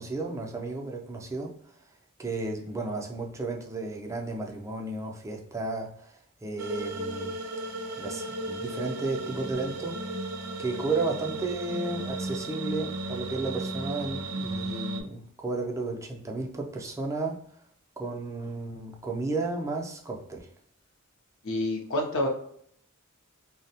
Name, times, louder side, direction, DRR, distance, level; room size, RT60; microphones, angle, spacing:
voice 1, 0.0-1.5 2.2-6.0 6.4-7.4 8.0-10.0 10.6-17.4 18.0-20.5, right 3 dB, 15° right, 0.4 m, -33 dB
sound 1, 6.6-15.0, right 2 dB, 85° right, 0.4 m, -35 dB
voice 2, 21.4-22.3, left 1 dB, 65° left, 0.6 m, -28 dB
2.7 x 2.1 x 2.7 m
head